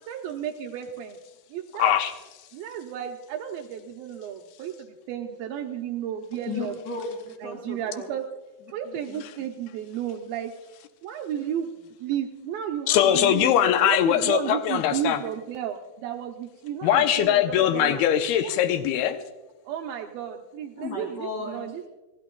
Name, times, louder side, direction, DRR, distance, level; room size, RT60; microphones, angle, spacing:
voice 1, 0.1-1.2 1.5-1.9 2.5-6.8 7.4-8.2 8.7-10.5 11.0-11.7 12.0-18.0 18.4-18.5 19.7-21.8, right 10 dB, 90° right, 3 dB, 2.0 m, -33 dB
voice 2, 1.8-2.1 12.9-15.2 16.8-19.2, left 10 dB, 85° left, 8 dB, 2.3 m, -21 dB
voice 3, 6.5-8.1 8.8-9.2 20.8-21.6, left 3 dB, 35° left, -1 dB, 1.9 m, -35 dB
28.5 x 14.0 x 2.3 m, 1.1 s
omnidirectional pair, 5.1 m